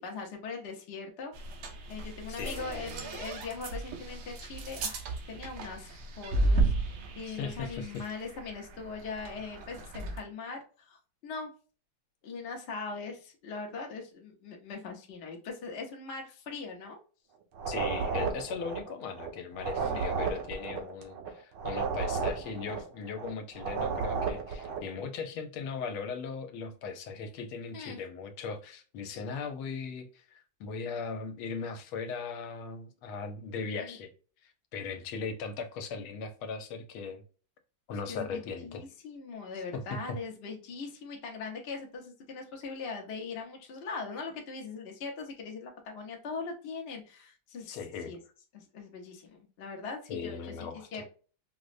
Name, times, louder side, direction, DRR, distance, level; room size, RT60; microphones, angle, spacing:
voice 1, 0.0-1.3 1.9-11.5 12.2-17.0 19.8-20.4 27.7-28.0 33.8-34.0 38.1-47.8 48.1-48.2 48.5-50.5 50.9-51.0, left 4 dB, 60° left, 0.6 m, -41 dB
sound 1, 1.3-10.2, right 2 dB, 85° right, 1.6 m, -34 dB
voice 2, 2.4-3.1 7.3-8.0 17.7-34.1 34.4-37.2 37.9-38.8 39.7-40.2 47.7-48.1 50.1-51.0, left 5 dB, 90° left, 1.5 m, -38 dB
sound 2, 17.5-24.9, right 5 dB, 70° right, 1.2 m, -33 dB
5.0 x 2.1 x 2.5 m
omnidirectional pair, 2.3 m